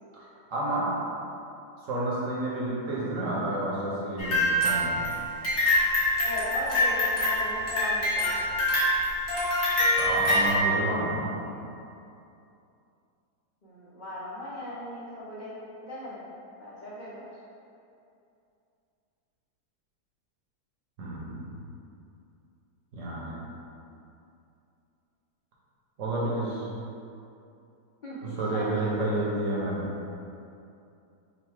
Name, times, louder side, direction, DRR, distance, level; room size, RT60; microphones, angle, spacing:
voice 1, 0.5-0.9 1.8-5.1 10.0-11.3 21.0-21.5 22.9-23.3 26.0-26.7 28.2-29.9, right 1 dB, 60° right, -6 dB, 1.0 m, -30 dB
sound 1, 4.2-10.6, left 1 dB, 60° left, 1.4 m, -25 dB
voice 2, 6.2-8.6 13.6-15.5 15.8-16.3 16.6-17.3 28.0-29.7, left 1 dB, 75° left, -9 dB, 0.4 m, -38 dB
3.9 x 2.1 x 4.5 m, 2.7 s
omnidirectional pair, 1.7 m